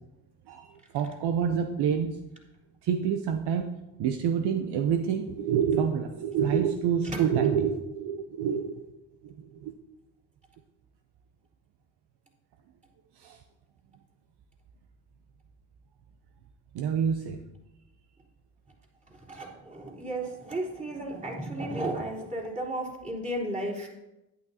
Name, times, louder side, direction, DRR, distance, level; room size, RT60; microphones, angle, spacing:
voice 1, 0.5-2.2 2.8-8.9 9.2-9.7 13.2-13.4 16.7-17.4, right 7 dB, 65° right, 6 dB, 0.8 m, -27 dB
voice 2, 19.3-23.9, right 1 dB, 15° right, -4 dB, 3.5 m, -34 dB
11.5 x 9.5 x 2.8 m, 0.96 s
supercardioid pair, 70°, 43 cm